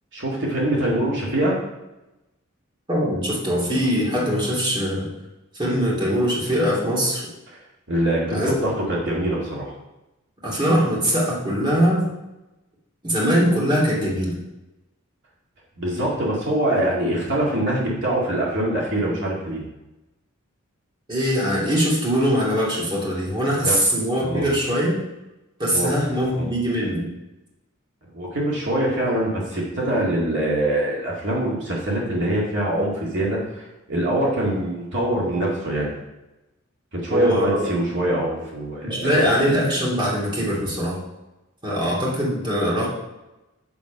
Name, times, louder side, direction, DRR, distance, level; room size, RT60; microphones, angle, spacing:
voice 1, 0.1-1.5 7.9-9.7 15.8-19.6 23.6-23.8 24.2-24.5 25.7-25.9 26.2-26.5 28.1-35.9 36.9-39.3, right 1 dB, 60° right, -4 dB, 2.2 m, -24 dB
voice 2, 2.9-5.1 5.5-7.3 8.2-8.6 10.4-12.1 13.0-14.4 21.1-25.0 25.6-27.1 37.1-37.6 38.8-41.0 41.6-42.9, equal, 25° right, -5 dB, 2.7 m, -22 dB
7.3 x 7.0 x 5.1 m, 0.99 s
head